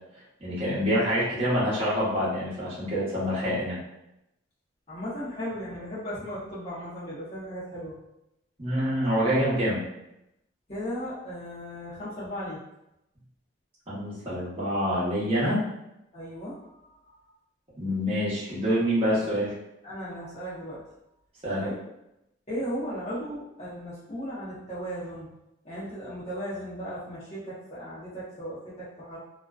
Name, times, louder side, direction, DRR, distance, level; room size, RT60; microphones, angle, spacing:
voice 1, 0.4-3.8 8.6-9.8 13.9-15.6 17.8-19.5 21.4-21.7, equal, 30° right, -9 dB, 0.9 m, -26 dB
voice 2, 4.9-8.0 10.7-12.6 16.1-16.5 16.8-17.2 19.8-20.8 21.6-21.8 22.5-25.3 25.6-29.2, equal, 30° left, -10 dB, 0.7 m, -36 dB
2.4 x 2.1 x 2.3 m, 0.87 s
head